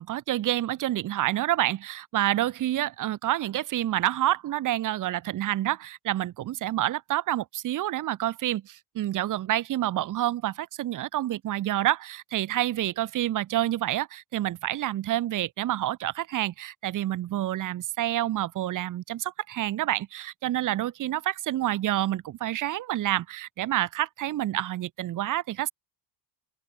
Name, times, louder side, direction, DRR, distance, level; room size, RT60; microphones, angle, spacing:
voice 1, 0.0-25.7, right 14 dB, 40° right, 1.4 m, -28 dB
open air
cardioid pair, 145°, 48 cm